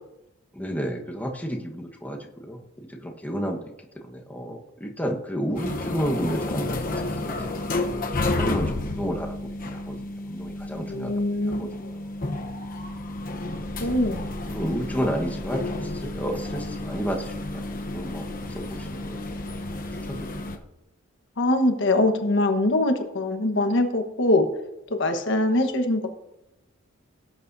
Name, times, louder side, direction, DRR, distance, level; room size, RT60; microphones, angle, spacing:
voice 1, 0.5-3.6 4.0-6.8 7.2-7.5 8.2-10.0 10.3-11.1 11.6-11.8 13.8-13.9 14.5-19.4 20.1-20.3, equal, 10° left, 0 dB, 1.3 m, -31 dB
sound 1, 5.6-20.6, left 2 dB, 45° left, 0.9 m, -31 dB
voice 2, 10.9-12.0 13.8-14.2 21.4-24.5 24.9-26.1, left 1 dB, 65° left, 6 dB, 1.3 m, -23 dB
18.0 x 8.7 x 2.7 m, 0.92 s
head